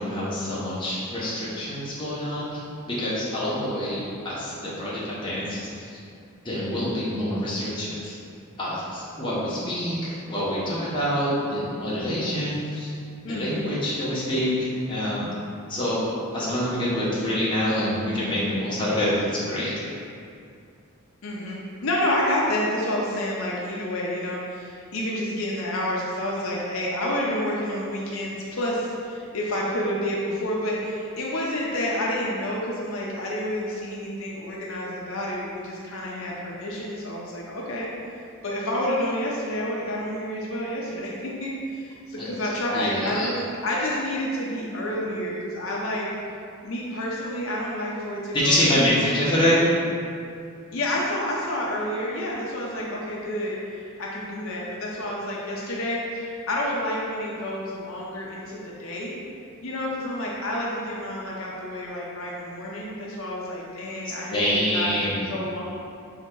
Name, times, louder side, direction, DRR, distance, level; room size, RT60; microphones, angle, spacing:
voice 1, 0.0-6.0 6.4-8.1 8.6-12.9 13.3-15.4 15.7-16.1 16.3-19.7 42.2-42.3 42.7-43.3 48.3-49.7 64.3-65.3, equal, 20° left, -8 dB, 0.8 m, -26 dB
voice 2, 13.2-13.6 21.2-37.9 38.4-43.3 43.6-46.1 46.6-48.7 49.0-49.3 50.7-59.1 59.6-65.6, left 1 dB, 65° left, -4 dB, 0.5 m, -29 dB
3.5 x 2.8 x 4.4 m, 2.4 s
head